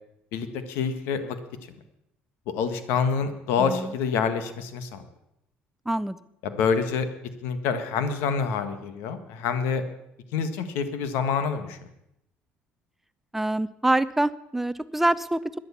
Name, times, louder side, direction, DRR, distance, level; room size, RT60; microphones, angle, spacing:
voice 1, 0.3-1.4 2.5-5.1 6.4-7.1 7.4-9.8 10.3-11.8, left 6 dB, 85° left, 10 dB, 1.5 m, -27 dB
voice 2, 3.6-3.9 5.9-6.2 13.3-15.6, right 1 dB, 5° right, 16 dB, 0.5 m, -25 dB
12.5 x 11.0 x 7.2 m, 0.81 s
cardioid pair, 120°, 4 cm